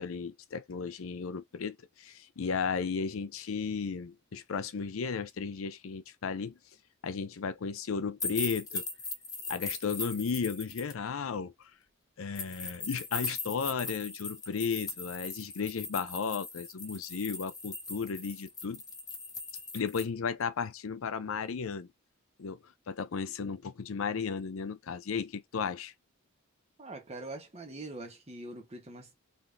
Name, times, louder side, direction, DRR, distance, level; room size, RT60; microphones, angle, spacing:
voice 1, 0.0-6.6 7.0-8.8 9.5-11.5 12.2-18.8 19.7-21.9 22.4-22.6 22.9-25.9, left 5 dB, 90° left, 0.5 m, -34 dB
sound 1, 8.2-10.9 12.3-20.0, left 4 dB, 20° left, 0.9 m, -39 dB
voice 2, 26.8-29.1, right 2 dB, 30° right, 1.1 m, -43 dB
3.4 x 2.7 x 2.5 m
head